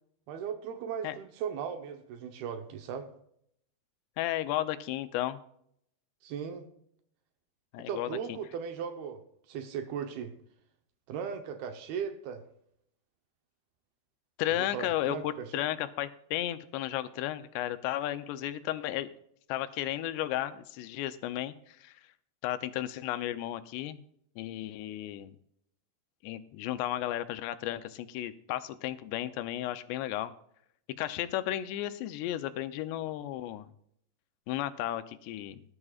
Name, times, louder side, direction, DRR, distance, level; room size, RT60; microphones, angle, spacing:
voice 1, 0.3-3.1 6.2-6.7 7.8-9.2 9.5-10.3 11.1-12.4 14.5-15.6, right 7 dB, 70° right, 7 dB, 2.7 m, -37 dB
voice 2, 4.2-5.4 7.7-8.2 14.4-19.1 19.5-22.0 22.4-24.0 24.4-25.3 26.2-30.3 31.0-33.7 34.5-35.6, left 13 dB, 85° left, 11 dB, 2.8 m, -34 dB
19.0 x 11.0 x 2.4 m, 0.70 s
omnidirectional pair, 4.9 m